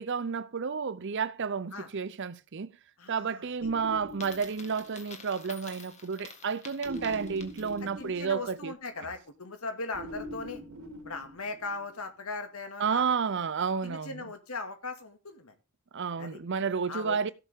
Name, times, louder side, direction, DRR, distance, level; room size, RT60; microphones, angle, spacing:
voice 1, 0.0-2.8 3.1-8.7 12.8-14.2 15.9-17.3, right 6 dB, 55° right, 0.6 m, -31 dB
voice 2, 3.0-3.7 7.1-7.2 8.0-10.6 11.0-13.1 13.8-15.5 16.2-16.4 16.9-17.3, left 3 dB, 75° left, 2.2 m, -39 dB
sound 1, 3.6-5.3 6.8-9.0 9.9-12.1, equal, 70° right, 3.0 m, -44 dB
Coin (dropping), 4.1-8.0, left 4 dB, 30° left, 2.0 m, -49 dB
16.0 x 7.0 x 3.6 m
head